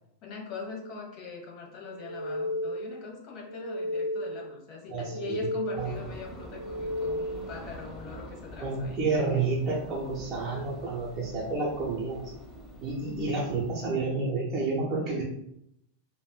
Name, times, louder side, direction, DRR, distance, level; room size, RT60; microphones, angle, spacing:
voice 1, 0.2-9.0 13.1-13.4, left 5 dB, 40° left, -1 dB, 1.1 m, -42 dB
sound 1, 1.9-3.0 3.4-4.5 4.9-6.0 6.4-7.6, left 1 dB, 70° right, 0.5 m, -34 dB
voice 2, 4.9-5.5 5.7-5.9 8.6-12.3 12.8-15.2, right 3 dB, 30° right, -6 dB, 0.9 m, -30 dB
sound 2, 5.7-13.9, equal, ahead, 0.9 m, -46 dB
4.9 x 2.5 x 2.2 m, 0.78 s
figure-of-eight pair, 90°, 0 cm